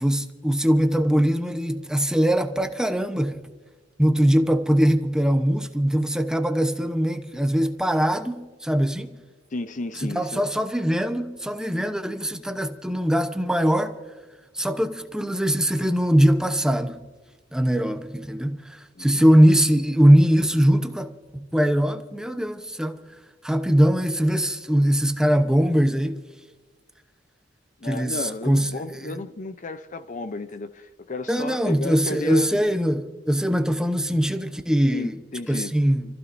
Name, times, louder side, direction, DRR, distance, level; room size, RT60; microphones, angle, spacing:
voice 1, 0.0-3.4 4.0-9.2 10.0-13.9 14.5-17.0 17.5-23.0 23.4-26.2 27.8-29.2 31.3-35.1 35.5-36.1, equal, 5° right, 0.8 m, -21 dB
voice 2, 9.5-10.5 19.0-19.3 27.8-32.6 34.9-35.8, left 2 dB, 40° left, 0.6 m, -33 dB
29.0 x 15.0 x 2.6 m
head